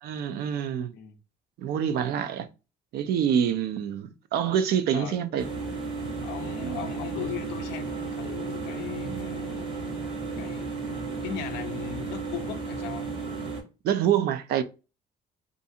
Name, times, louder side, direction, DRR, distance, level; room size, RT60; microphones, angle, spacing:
voice 1, 0.0-0.9 1.6-2.5 2.9-5.5 6.6-6.8 13.8-14.6, right 9 dB, 70° right, 0.4 m, -26 dB
voice 2, 4.9-5.2 6.2-10.0 10.4-10.7 11.2-13.1, left 10 dB, 85° left, 0.5 m, -38 dB
sound 1, 5.4-13.6, right 4 dB, 30° right, 1.1 m, -34 dB
2.6 x 2.4 x 2.5 m
cardioid pair, 110°, 17 cm